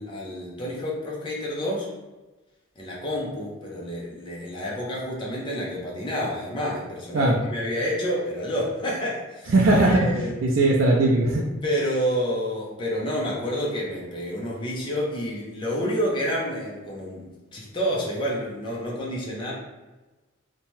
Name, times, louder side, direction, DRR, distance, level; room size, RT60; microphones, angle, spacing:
voice 1, 0.0-1.9 2.8-9.5 9.9-10.3 11.6-19.5, equal, 25° left, -4 dB, 0.5 m, -29 dB
voice 2, 9.5-11.4, right 2 dB, 80° right, -2 dB, 0.4 m, -19 dB
2.7 x 2.2 x 3.0 m, 1.2 s
head